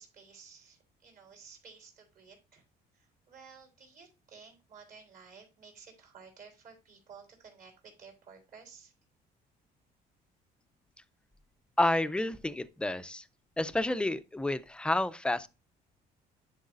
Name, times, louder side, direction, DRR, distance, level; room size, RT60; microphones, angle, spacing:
voice 1, 0.0-2.6 2.9-8.9, right 5 dB, 55° right, 3.5 m, -54 dB
voice 2, 11.8-13.2 13.6-15.5, left 1 dB, 5° left, 0.4 m, -30 dB
10.5 x 4.8 x 2.5 m
cardioid pair, 110°, 17 cm